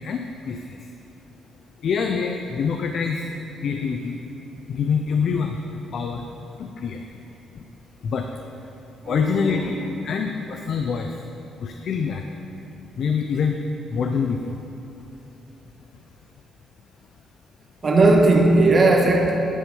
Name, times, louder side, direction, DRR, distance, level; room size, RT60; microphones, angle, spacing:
voice 1, 0.0-0.8 1.8-3.3 3.6-4.2 4.7-5.6 5.9-6.2 6.6-7.0 8.0-8.2 9.1-11.1 11.6-12.2 13.0-13.6 13.9-14.5, left 6 dB, 60° left, 4 dB, 0.7 m, -25 dB
voice 2, 9.0-9.7 17.8-19.5, right 2 dB, 40° right, 0 dB, 1.7 m, -17 dB
10.0 x 9.0 x 5.4 m, 3.0 s
cardioid pair, 90°, 0 cm